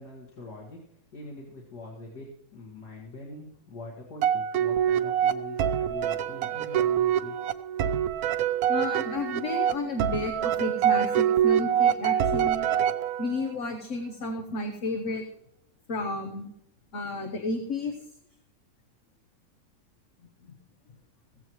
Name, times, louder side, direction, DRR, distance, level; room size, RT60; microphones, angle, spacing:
voice 1, 0.0-7.4, left 2 dB, 90° left, -2 dB, 2.6 m, -43 dB
sound 1, 4.2-13.5, right 9 dB, 70° right, 1.1 m, -25 dB
voice 2, 8.7-12.7 13.2-15.2 15.9-16.5 16.9-17.9 20.5-20.6, left 2 dB, 55° left, 4 dB, 1.3 m, -32 dB
16.0 x 15.5 x 3.1 m, 0.78 s
omnidirectional pair, 1.7 m